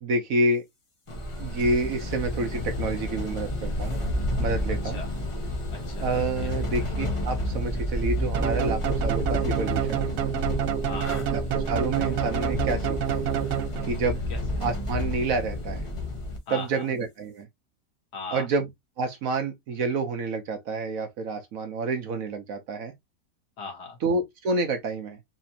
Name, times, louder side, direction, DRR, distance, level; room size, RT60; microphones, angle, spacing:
voice 1, 0.0-0.6 1.4-4.0 4.4-5.0 6.0-10.1 11.3-13.2 13.9-14.2 14.6-15.8 16.5-17.5 18.3-18.7 19.0-22.9 24.0-25.2, right 3 dB, 65° right, 1.0 m, -28 dB
sound 1, 1.1-16.4, left 1 dB, 30° left, 0.6 m, -30 dB
voice 2, 4.7-5.1 5.7-6.1 6.4-6.7 10.6-11.3 14.3-14.4 16.5-16.9 18.1-18.5 23.6-24.0, left 4 dB, 75° left, 2.0 m, -39 dB
sound 2, 8.3-14.1, right 10 dB, 90° right, 0.6 m, -28 dB
4.2 x 2.8 x 2.7 m
omnidirectional pair, 1.8 m